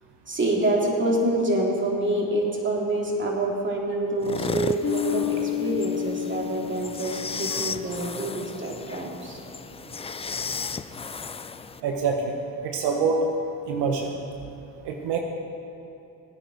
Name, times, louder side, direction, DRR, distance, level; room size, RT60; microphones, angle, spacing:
voice 1, 0.3-9.4, right 1 dB, 30° right, -2 dB, 2.9 m, -26 dB
sound 1, 4.2-11.8, left 5 dB, 15° left, 0.3 m, -34 dB
Bass guitar, 4.8-8.3, left 12 dB, 40° left, 2.7 m, -31 dB
voice 2, 11.8-12.4 12.6-13.2 13.7-14.2 14.8-15.2, right 5 dB, 80° right, 2 dB, 1.2 m, -25 dB
20.0 x 9.0 x 4.1 m, 2.7 s
supercardioid pair, 75°, 40 cm